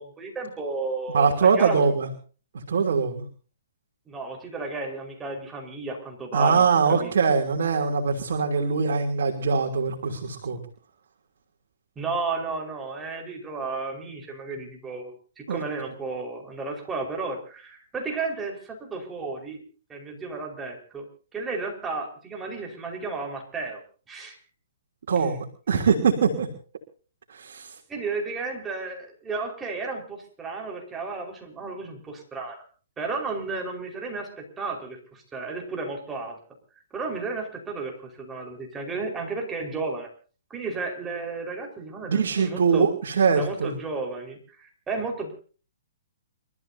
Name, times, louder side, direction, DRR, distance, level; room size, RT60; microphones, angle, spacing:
voice 1, 0.0-1.9 4.1-7.2 11.9-19.6 19.9-21.0 21.3-23.8 24.1-24.4 27.9-32.6 33.0-36.4 36.9-40.1 40.5-42.9 43.3-45.3, right 3 dB, 15° right, 2 dB, 4.8 m, -33 dB
voice 2, 1.1-2.1 2.5-3.2 6.3-10.6 15.5-15.6 25.1-26.5 27.3-27.8 42.1-43.7, right 5 dB, 70° right, 2 dB, 3.1 m, -22 dB
29.5 x 14.0 x 2.8 m, 0.39 s
hypercardioid pair, 145°, 0 cm